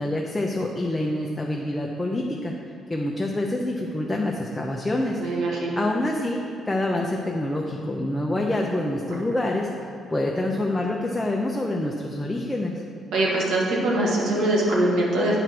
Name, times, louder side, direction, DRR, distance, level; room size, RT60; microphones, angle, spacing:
voice 1, 0.0-2.5 2.9-5.2 5.8-6.4 6.7-9.7 10.1-12.8, left 1 dB, 15° left, -1 dB, 0.8 m, -26 dB
voice 2, 5.2-5.8 13.1-15.4, right 1 dB, 75° right, -3 dB, 1.8 m, -22 dB
9.0 x 4.5 x 6.0 m, 2.7 s
cardioid pair, 90°, 0 cm